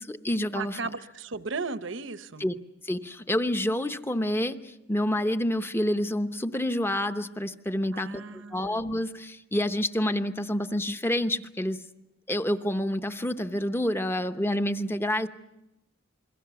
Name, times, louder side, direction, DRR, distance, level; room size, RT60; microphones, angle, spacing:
voice 1, 0.0-0.8 2.4-2.5 2.8-11.8 12.3-15.3, left 1 dB, 10° left, 9 dB, 0.9 m, -28 dB
voice 2, 0.5-2.5 7.9-8.8, right 4 dB, 65° right, 12 dB, 1.0 m, -36 dB
27.5 x 23.0 x 6.9 m, 0.92 s
head